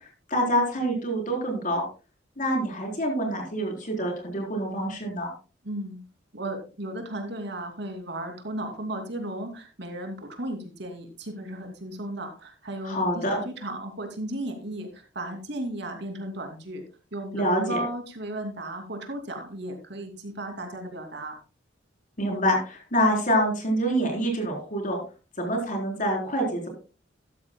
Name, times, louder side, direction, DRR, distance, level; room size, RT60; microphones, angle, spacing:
voice 1, 0.3-1.8 2.4-5.3 12.9-13.4 17.3-17.8 22.2-25.0 25.4-26.7, equal, 45° left, 2 dB, 4.2 m, -26 dB
voice 2, 5.6-6.0 6.3-16.8 17.1-21.4, right 1 dB, 65° right, 4 dB, 2.8 m, -35 dB
14.0 x 12.5 x 2.3 m, 0.33 s
head